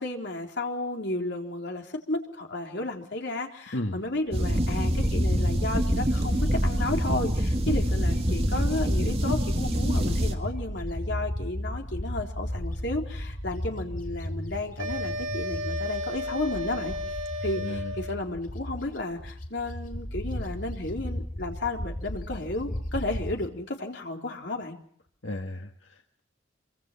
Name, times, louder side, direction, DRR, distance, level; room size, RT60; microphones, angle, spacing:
voice 1, 0.0-16.9 17.4-24.8, left 2 dB, 60° left, 2 dB, 3.8 m, -33 dB
sound 1, 4.3-10.3, equal, 30° right, 2.5 m, -25 dB
Bird, 4.4-8.9 9.2-23.4, equal, 45° left, 3.6 m, -35 dB
sound 2, 14.8-18.3, left 1 dB, 75° right, 2.2 m, -34 dB
voice 2, 17.5-17.9 25.2-26.2, left 1 dB, 85° left, 3 dB, 1.9 m, -34 dB
26.5 x 24.5 x 5.7 m, 0.65 s
head